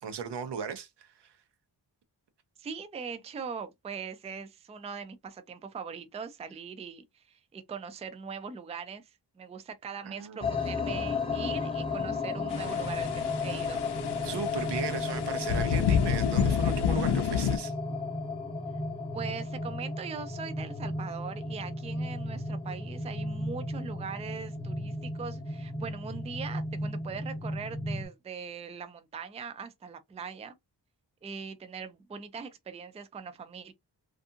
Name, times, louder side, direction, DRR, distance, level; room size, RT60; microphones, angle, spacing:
voice 1, 0.0-1.3 10.0-10.5 14.2-17.7, right 6 dB, 75° right, 0.6 m, -37 dB
voice 2, 2.6-13.8 19.1-30.6 31.2-33.7, right 6 dB, 15° right, 0.3 m, -41 dB
sound 1, 10.4-28.1, left 3 dB, 15° left, 0.7 m, -34 dB
sound 2, 12.5-17.6, left 7 dB, 70° left, 0.6 m, -29 dB
2.6 x 2.5 x 2.5 m
wide cardioid pair, 105°, 42 cm